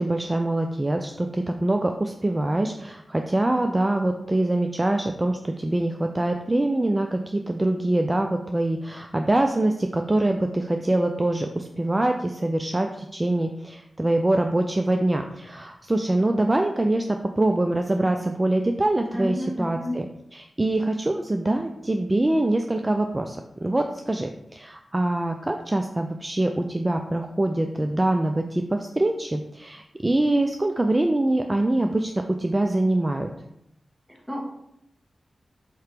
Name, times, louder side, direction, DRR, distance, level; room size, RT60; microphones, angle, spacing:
voice 1, 0.0-20.0 20.3-32.1 32.4-33.3, right 1 dB, 30° right, 4 dB, 0.3 m, -24 dB
voice 2, 19.1-20.0 34.1-34.4, left 1 dB, ahead, -2 dB, 1.4 m, -30 dB
4.4 x 2.9 x 3.3 m, 0.79 s
cardioid pair, 45°, 0 cm